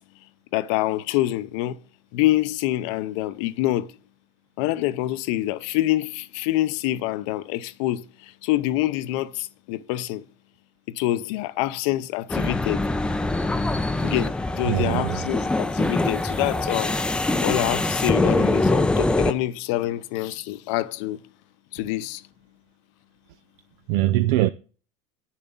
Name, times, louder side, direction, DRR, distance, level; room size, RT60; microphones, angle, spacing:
voice 1, 0.5-1.8 2.1-3.9 4.6-10.2 10.9-12.8 14.0-17.0 17.4-21.2 21.7-22.2, left 15 dB, 70° left, 0.8 m, -26 dB
sound 1, 12.3-19.3, left 2 dB, 5° left, 0.5 m, -23 dB
voice 2, 14.6-15.3 23.9-24.5, right 15 dB, 70° right, 0.5 m, -22 dB
10.0 x 7.1 x 4.0 m
supercardioid pair, 140°, 16 cm